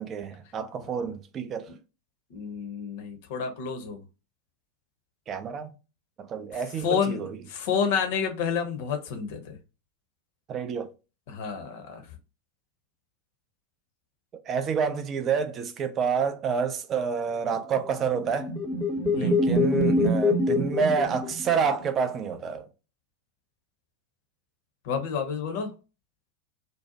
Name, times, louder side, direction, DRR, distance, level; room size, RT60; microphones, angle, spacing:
voice 1, 0.0-1.7 5.3-5.7 6.2-7.4 10.5-10.9 14.5-18.5 19.1-22.7, right 6 dB, 30° right, 0.4 m, -28 dB
voice 2, 2.3-4.0 6.8-9.5 11.3-12.0 19.1-19.5 24.8-25.7, left 6 dB, 50° left, 0.7 m, -29 dB
sound 1, 17.9-21.9, left 2 dB, 5° left, 0.7 m, -25 dB
2.6 x 2.0 x 2.7 m
figure-of-eight pair, 90°, 0 cm